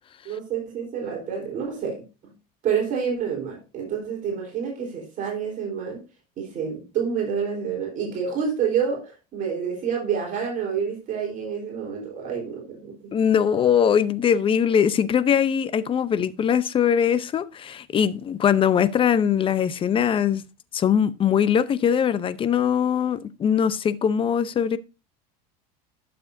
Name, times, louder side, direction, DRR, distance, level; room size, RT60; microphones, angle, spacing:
voice 1, 0.2-2.0 2.6-6.0 6.4-13.1, right 7 dB, 40° right, 4.0 m, -28 dB
voice 2, 13.1-20.4 20.7-24.8, left 8 dB, 25° left, 0.7 m, -21 dB
12.0 x 6.9 x 2.6 m
supercardioid pair, 125°, 20 cm